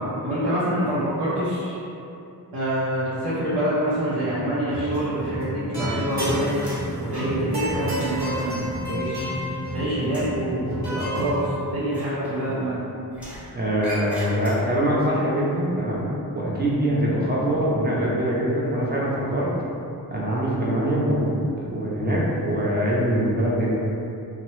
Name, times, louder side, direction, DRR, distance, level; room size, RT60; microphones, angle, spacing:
voice 1, 0.0-1.8 2.5-6.5 7.0-12.8, right 1 dB, 80° right, -11 dB, 0.7 m, -26 dB
sound 1, 4.6-4.9 5.2-11.4, equal, 45° right, 0.9 m, -30 dB
sound 2, 4.9-5.7 6.0-9.7 10.0-10.4 11.8-12.7 13.1-14.9, left 1 dB, 5° right, 0.8 m, -41 dB
voice 2, 13.6-16.0 16.3-19.5 20.1-23.7, equal, 25° right, -6 dB, 0.4 m, -23 dB
2.7 x 2.0 x 3.0 m, 2.7 s
wide cardioid pair, 160°, 40 cm